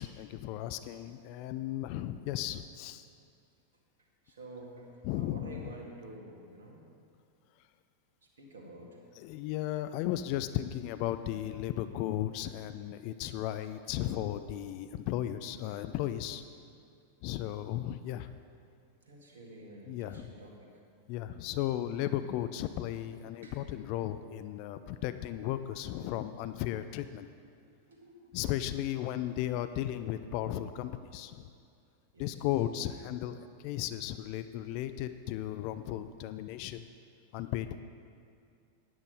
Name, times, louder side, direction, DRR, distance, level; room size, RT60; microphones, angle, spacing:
voice 1, 0.0-3.1 5.0-5.7 9.2-16.4 17.2-18.3 19.9-20.3 21.1-27.3 28.3-31.5 32.2-36.9 37.3-37.8, left 12 dB, 45° left, 11 dB, 0.4 m, -35 dB
voice 2, 4.2-6.8 8.4-9.0 19.1-20.7 23.4-23.5 25.8-26.1 27.9-28.3 32.1-32.4, right 2 dB, 65° right, -1 dB, 1.9 m, -49 dB
9.6 x 9.3 x 4.9 m, 2.3 s
figure-of-eight pair, 90°, 0 cm